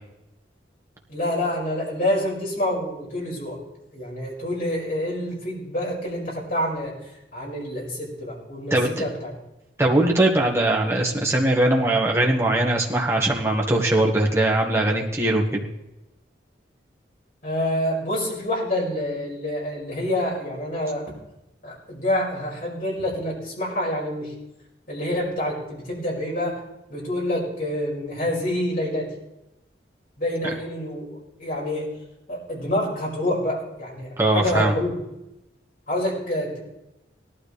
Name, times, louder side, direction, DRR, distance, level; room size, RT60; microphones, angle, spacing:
voice 1, 1.1-3.6 3.9-9.3 17.4-21.1 21.6-24.3 24.9-26.6 26.9-29.1 30.2-31.9 32.3-35.0 35.9-36.6, left 1 dB, 45° left, -4 dB, 5.3 m, -27 dB
voice 2, 9.8-15.6 34.2-34.7, right 1 dB, 15° right, -2 dB, 1.6 m, -20 dB
17.5 x 12.0 x 3.3 m, 0.90 s
head